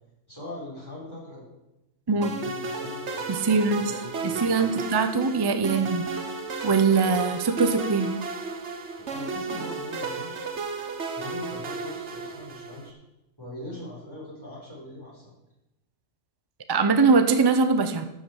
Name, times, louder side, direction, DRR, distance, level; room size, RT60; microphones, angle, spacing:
voice 1, 0.3-1.5 2.1-4.8 5.6-5.9 9.0-10.5 11.2-12.9 13.4-15.3, left 1 dB, 15° left, -6 dB, 4.7 m, -41 dB
sound 1, 2.2-12.9, right 4 dB, 60° right, 1.4 m, -33 dB
voice 2, 3.3-3.9 4.2-6.1 6.6-8.1 16.7-18.0, right 4 dB, 30° right, 9 dB, 0.5 m, -22 dB
13.0 x 6.5 x 6.2 m, 0.93 s
omnidirectional pair, 1.3 m